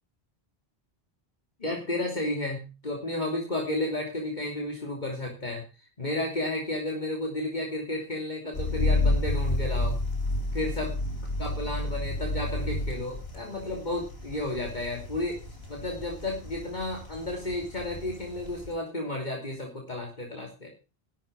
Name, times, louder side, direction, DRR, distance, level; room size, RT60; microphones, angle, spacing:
voice 1, 1.6-5.6 6.0-10.0 10.5-10.9 11.4-15.4 15.7-20.7, left 1 dB, 45° left, 0 dB, 3.1 m, -32 dB
sound 1, 8.5-18.7, left 1 dB, 70° left, 4.5 m, -31 dB
12.5 x 7.5 x 7.2 m, 0.32 s
omnidirectional pair, 1.1 m